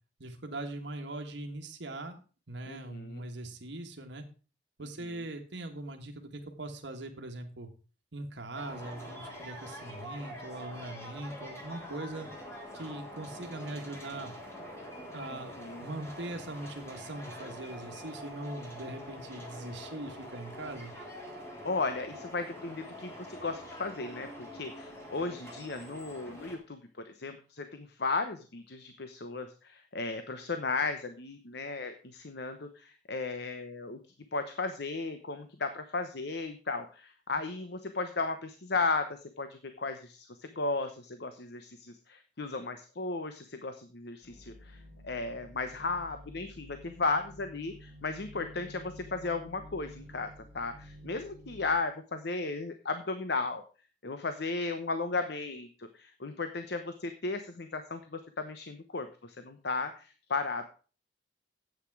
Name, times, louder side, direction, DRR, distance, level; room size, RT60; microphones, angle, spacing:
voice 1, 0.2-2.2 2.5-4.2 4.8-7.7 8.1-12.3 12.7-14.3 15.1-20.9, right 2 dB, 80° right, 3 dB, 1.6 m, -41 dB
voice 2, 2.7-3.2 5.0-5.2 15.3-15.8 21.6-26.8 27.0-34.0 34.3-50.3 50.5-53.6 54.0-60.6, left 3 dB, 65° left, 8 dB, 1.0 m, -35 dB
sound 1, 8.5-26.6, equal, 15° left, 3.5 m, -45 dB
sound 2, 44.2-51.7, left 1 dB, 50° left, 3.9 m, -51 dB
10.5 x 8.3 x 4.8 m, 0.36 s
head